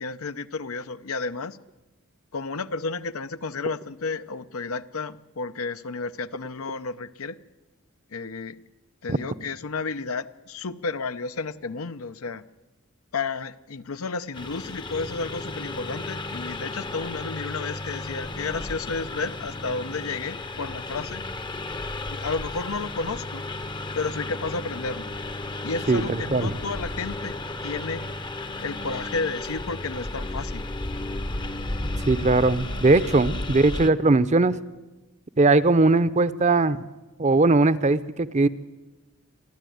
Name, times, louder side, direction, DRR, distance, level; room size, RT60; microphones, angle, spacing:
voice 1, 0.0-1.6 2.3-7.4 8.1-8.6 9.0-12.4 13.1-21.2 22.1-23.4 23.9-25.1 25.6-27.4 27.6-28.0 28.6-30.7, left 4 dB, 85° left, 11 dB, 0.8 m, -32 dB
Engine, 14.3-33.9, left 2 dB, 20° left, 0.7 m, -33 dB
voice 2, 25.9-26.5 32.1-34.6 35.4-36.8 37.2-38.5, right 3 dB, 35° right, 15 dB, 0.7 m, -20 dB
28.0 x 11.5 x 9.3 m, 1.1 s
head